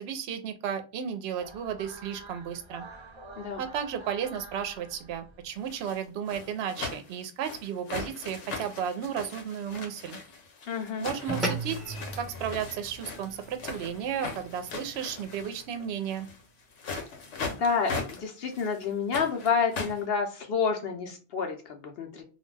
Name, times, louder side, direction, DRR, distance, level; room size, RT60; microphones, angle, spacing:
voice 1, 0.0-2.8 3.6-10.2 11.0-16.3, right 8 dB, 70° right, 8 dB, 0.8 m, -34 dB
sound 1, 1.4-5.7, right 2 dB, 35° right, 0.4 m, -48 dB
sound 2, 5.6-16.4 16.7-18.2 18.5-20.0, left 4 dB, 80° left, 1.0 m, -39 dB
voice 2, 10.7-11.1 17.5-22.2, left 5 dB, 65° left, 4 dB, 0.8 m, -29 dB
sound 3, 11.3-15.9, right 1 dB, ahead, 0.6 m, -38 dB
2.4 x 2.1 x 3.2 m, 0.37 s
omnidirectional pair, 1.2 m